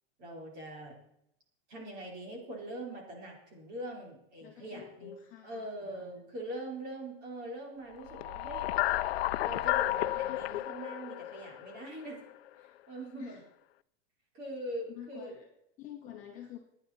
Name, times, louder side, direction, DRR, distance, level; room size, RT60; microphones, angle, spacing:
voice 1, 0.2-1.0 1.7-5.1 5.4-8.7 9.4-12.2 12.6-13.4 14.3-15.4, right 1 dB, 30° right, -1 dB, 4.3 m, -42 dB
voice 2, 4.4-6.3 13.2-13.4 14.9-15.5 15.8-16.6, left 10 dB, 25° left, 0 dB, 1.8 m, -48 dB
sound 1, 8.0-12.3, left 15 dB, 70° left, 0.7 m, -32 dB
27.0 x 9.8 x 4.3 m, 0.79 s
supercardioid pair, 175°, 32 cm